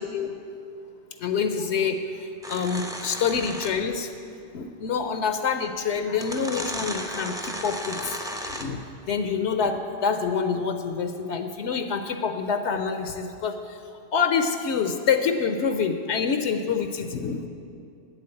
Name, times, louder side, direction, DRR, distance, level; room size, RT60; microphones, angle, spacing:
voice 1, 1.2-4.1 4.5-8.2 8.4-17.5, left 6 dB, 75° left, 8 dB, 0.9 m, -27 dB
sound 1, 2.4-4.0 5.3-5.4 6.1-8.9, equal, 5° right, 0.5 m, -35 dB
8.2 x 7.8 x 8.7 m, 2.6 s
omnidirectional pair, 1.2 m